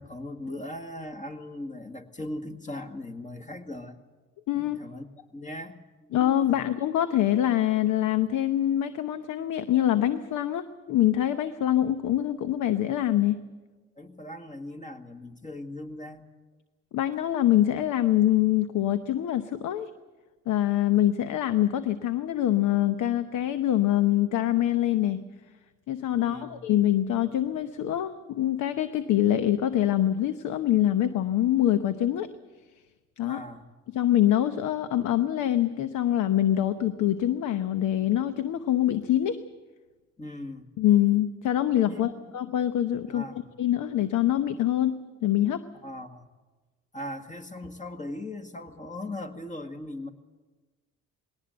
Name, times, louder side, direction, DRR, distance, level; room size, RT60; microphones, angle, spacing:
voice 1, 0.0-4.0 4.5-6.2 6.4-6.7 14.0-16.3 26.1-26.6 33.2-33.7 40.2-40.7 41.9-42.2 43.1-43.5 45.8-46.3 46.9-50.1, left 1 dB, 25° left, 6 dB, 1.9 m, -39 dB
voice 2, 4.5-4.8 6.1-13.4 16.9-19.9 20.5-25.2 25.9-32.3 33.2-33.4 33.9-39.4 40.8-43.2 43.6-45.6, left 12 dB, 80° left, 11 dB, 0.9 m, -24 dB
20.5 x 18.0 x 7.9 m, 1.3 s
cardioid pair, 90°, 30 cm